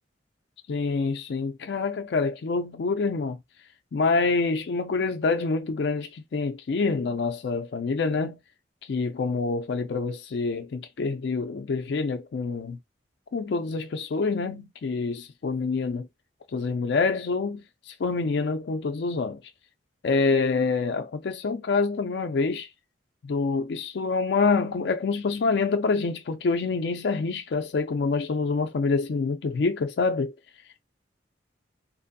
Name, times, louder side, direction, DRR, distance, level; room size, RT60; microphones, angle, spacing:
voice 1, 0.7-3.4 3.9-8.4 8.9-12.8 13.3-16.1 16.5-17.6 18.0-19.4 20.0-22.7 23.2-30.3, left 4 dB, 65° left, 0.4 m, -26 dB
2.6 x 2.5 x 2.5 m
head